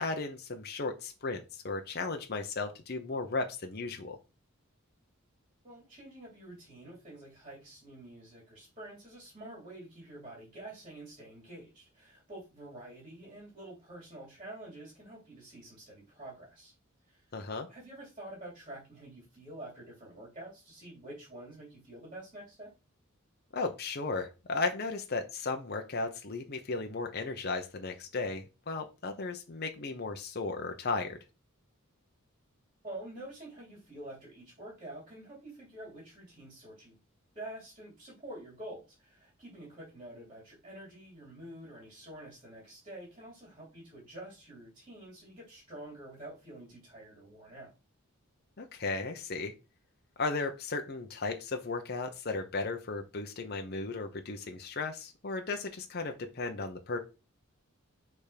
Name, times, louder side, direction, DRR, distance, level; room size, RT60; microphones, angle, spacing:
voice 1, 0.0-4.2 17.3-17.7 23.5-31.2 48.6-49.5 50.2-57.0, left 3 dB, 50° left, 5 dB, 0.8 m, -35 dB
voice 2, 5.6-16.7 17.1-17.3 17.7-22.7 32.8-37.0 37.3-47.7, right 1 dB, 25° right, -3 dB, 3.1 m, -48 dB
6.8 x 3.6 x 5.1 m, 0.29 s
head